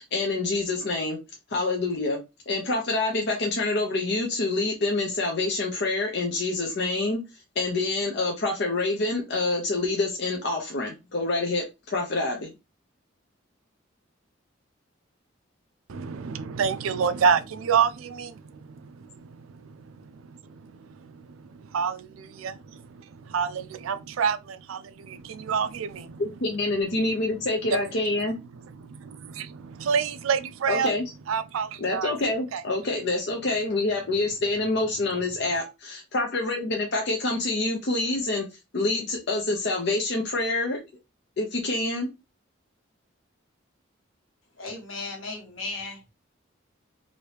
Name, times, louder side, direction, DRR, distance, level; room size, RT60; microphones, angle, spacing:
voice 1, 0.1-1.2 1.5-2.2 2.5-7.2 7.6-12.5 26.2-28.3 30.7-31.0 31.8-38.5 38.7-40.8 41.4-42.1, left 2 dB, 55° left, 0.6 m, -26 dB
voice 2, 15.9-26.2 27.7-27.9 28.5-30.9 31.3-32.1 32.5-32.6, right 6 dB, 85° right, 0.4 m, -29 dB
voice 3, 44.6-46.1, left 3 dB, 85° left, 1.3 m, -36 dB
2.9 x 2.6 x 3.2 m
head